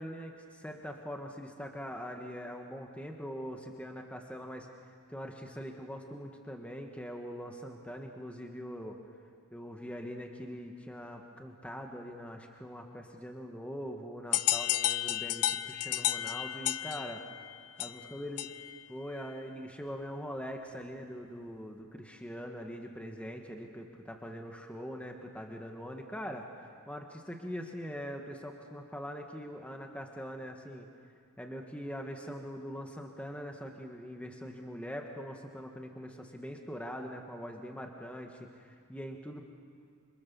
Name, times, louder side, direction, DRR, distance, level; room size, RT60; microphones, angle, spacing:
voice 1, 0.0-4.7 5.1-9.0 9.5-17.2 17.8-18.5 18.9-30.9 31.4-39.4, equal, 5° left, 2 dB, 1.7 m, -42 dB
sound 1, 14.3-18.8, left 13 dB, 85° left, 0.7 m, -32 dB
27.0 x 27.0 x 7.2 m, 2.2 s
head